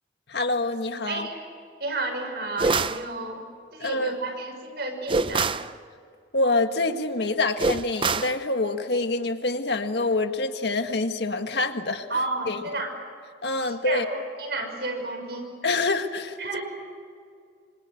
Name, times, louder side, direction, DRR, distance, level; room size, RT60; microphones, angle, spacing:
voice 1, 0.3-1.3 3.8-4.1 6.3-12.1 12.5-12.6 13.4-14.0 15.6-16.4, left 2 dB, 70° left, 6 dB, 1.7 m, -26 dB
voice 2, 1.1-1.4 1.8-3.4 3.7-5.5 12.1-12.9 13.6-15.6 16.4-16.6, right 2 dB, 60° right, 3 dB, 5.9 m, -31 dB
sound 1, 2.6-3.0 5.1-5.7 7.6-8.4, right 4 dB, 25° right, 0.6 m, -24 dB
26.5 x 26.0 x 8.0 m, 2.2 s
head